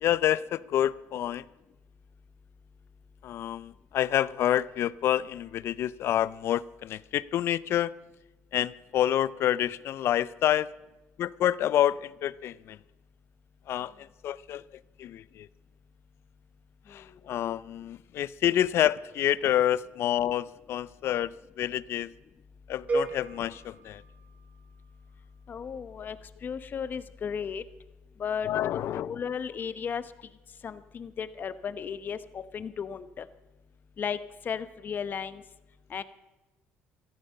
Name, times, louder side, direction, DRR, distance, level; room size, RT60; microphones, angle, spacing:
voice 1, 0.0-1.4 3.2-7.9 8.5-10.7 11.2-12.8 13.7-14.6 15.0-15.5 16.9-22.1 22.7-24.0 28.4-29.2, left 11 dB, 60° left, 20 dB, 0.5 m, -28 dB
voice 2, 16.9-17.2 25.5-26.2 26.4-27.6 28.2-30.1 30.6-33.3 34.0-34.2 34.4-35.4 35.9-36.0, left 7 dB, 40° left, 14 dB, 0.8 m, -35 dB
sound 1, 22.9-25.0, right 3 dB, 35° right, 2.3 m, -34 dB
15.5 x 13.5 x 5.4 m, 1.1 s
cardioid pair, 95°, 5 cm